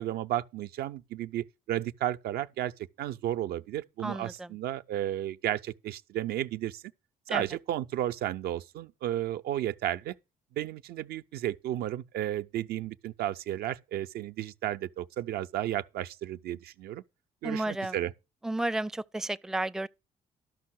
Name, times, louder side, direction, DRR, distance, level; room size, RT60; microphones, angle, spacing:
voice 1, 0.0-2.7 3.0-6.8 7.3-10.1 10.5-17.0 17.4-18.1, right 12 dB, 65° right, 0.6 m, -33 dB
voice 2, 4.0-4.5 7.3-7.4 17.4-18.0 18.4-19.9, right 2 dB, 5° right, 0.4 m, -32 dB
12.5 x 5.7 x 6.2 m
hypercardioid pair, 50°, 17 cm